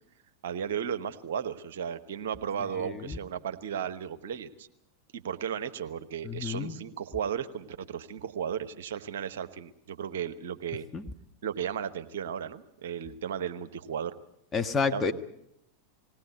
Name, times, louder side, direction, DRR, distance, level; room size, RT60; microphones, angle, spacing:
voice 1, 0.4-4.7 5.1-10.9 11.4-14.1 14.9-15.0, right 8 dB, 65° right, 10 dB, 1.1 m, -35 dB
voice 2, 2.8-3.2 6.2-6.7 10.9-11.0 14.5-15.1, left 5 dB, 20° left, 5 dB, 1.4 m, -29 dB
20.0 x 17.5 x 8.3 m, 0.79 s
figure-of-eight pair, 90°, 0 cm